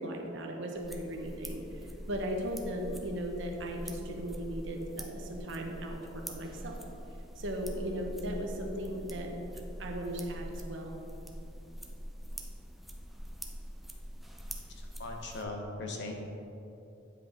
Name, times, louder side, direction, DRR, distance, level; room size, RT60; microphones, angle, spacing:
voice 1, 0.0-6.8 7.4-11.0, equal, 65° right, 2 dB, 0.9 m, -37 dB
sound 1, 0.8-15.4, equal, ahead, 0.4 m, -44 dB
voice 2, 14.7-16.1, left 2 dB, 60° left, 2 dB, 0.9 m, -39 dB
9.1 x 5.2 x 3.6 m, 2.9 s
head